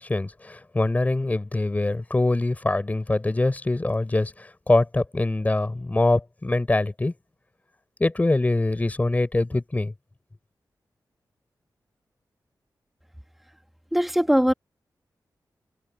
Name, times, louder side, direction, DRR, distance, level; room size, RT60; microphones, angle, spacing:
voice 1, 0.0-7.1 8.0-9.9, left 2 dB, 20° left, 4.3 m, -24 dB
voice 2, 13.9-14.5, equal, ahead, 1.3 m, -20 dB
wide cardioid pair, 145°, 7 cm